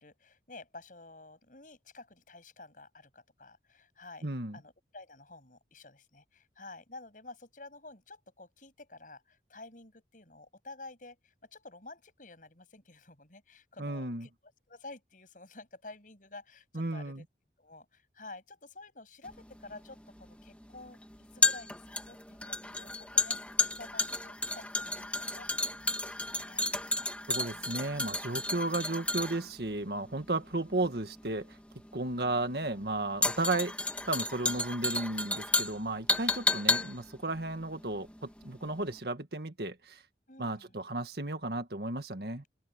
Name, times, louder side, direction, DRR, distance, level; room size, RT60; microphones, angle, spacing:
voice 1, 0.0-4.3 4.5-17.2 17.6-21.0 21.3-26.7 27.5-27.7 40.3-40.7, left 2 dB, 50° left, 7.9 m, -51 dB
voice 2, 4.2-4.6 13.8-14.3 16.7-17.2 27.3-31.6 31.9-33.7 34.1-40.0 40.4-42.5, right 2 dB, 60° right, 1.8 m, -34 dB
sound 1, 19.3-38.5 38.8-38.9, left 2 dB, 5° left, 2.2 m, -32 dB
open air
head